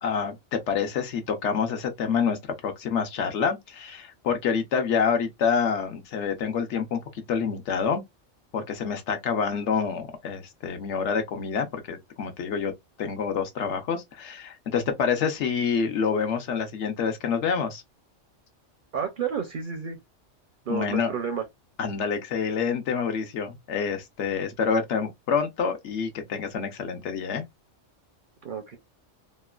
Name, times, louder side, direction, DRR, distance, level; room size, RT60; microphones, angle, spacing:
voice 1, 0.0-7.0 7.3-8.0 8.5-12.7 13.0-17.8 20.7-21.1 21.8-27.4, left 6 dB, 70° left, 1.0 m, -27 dB
voice 2, 18.9-20.0 20.7-21.4 28.4-28.8, right 7 dB, 55° right, 0.6 m, -30 dB
3.0 x 2.1 x 2.2 m
omnidirectional pair, 1.3 m